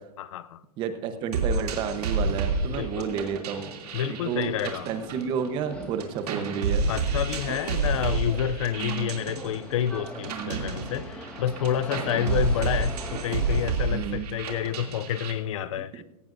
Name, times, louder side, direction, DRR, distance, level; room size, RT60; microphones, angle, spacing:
voice 1, 0.2-0.6 2.7-3.1 3.9-4.9 6.9-16.0, left 10 dB, 55° left, 0.6 m, -29 dB
voice 2, 0.8-3.7 4.1-4.5 4.9-7.0 8.8-9.1 10.3-10.7 12.1-12.3 13.9-14.3 15.9-16.0, right 7 dB, 25° right, 1.0 m, -31 dB
sound 1, 1.3-5.7 6.0-15.3, right 3 dB, 75° right, 2.8 m, -30 dB
sound 2, 2.2-13.7, left 1 dB, 5° left, 1.5 m, -42 dB
17.0 x 17.0 x 2.6 m
supercardioid pair, 160°, 20 cm